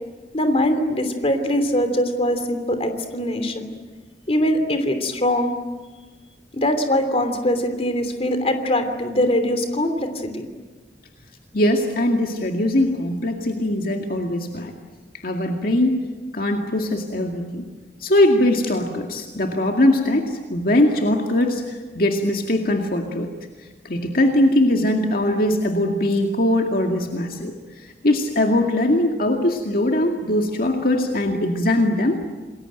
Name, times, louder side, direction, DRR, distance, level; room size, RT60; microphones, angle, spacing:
voice 1, 0.3-3.6 4.3-5.5 6.5-10.5, left 1 dB, 35° left, 8 dB, 3.1 m, -22 dB
voice 2, 11.5-14.7 15.2-16.0 16.3-17.6 18.0-23.3 23.8-32.2, left 1 dB, 55° left, 2 dB, 2.2 m, -21 dB
28.0 x 21.0 x 9.1 m, 1.3 s
head